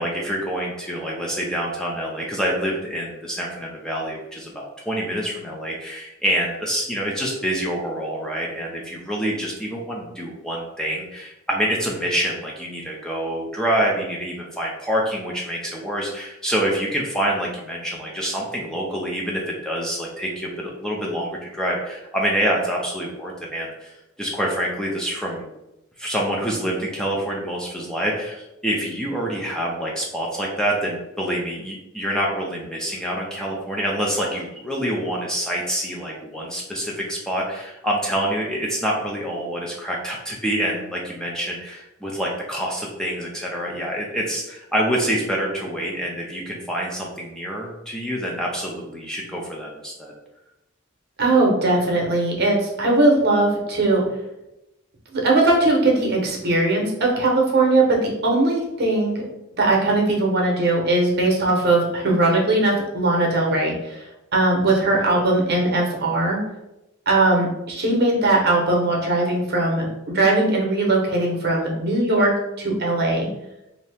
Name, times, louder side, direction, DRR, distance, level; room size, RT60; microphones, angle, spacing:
voice 1, 0.0-25.5 26.0-50.1, equal, 5° left, -3 dB, 0.4 m, -26 dB
voice 2, 51.2-54.0 55.1-59.2 59.6-64.0 64.3-66.4 67.1-73.3, right 2 dB, 55° right, 0 dB, 0.8 m, -20 dB
2.7 x 2.7 x 3.3 m, 0.90 s
head